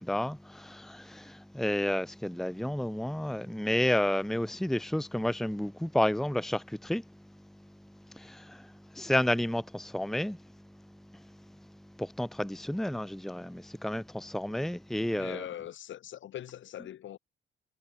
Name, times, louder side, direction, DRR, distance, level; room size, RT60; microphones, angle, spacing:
voice 1, 0.0-7.0 8.2-8.6 8.9-10.4 12.0-15.4, left 1 dB, ahead, 1.0 m, -31 dB
voice 2, 15.2-17.2, left 11 dB, 70° left, 4.0 m, -41 dB
cardioid pair, 90°, 20 cm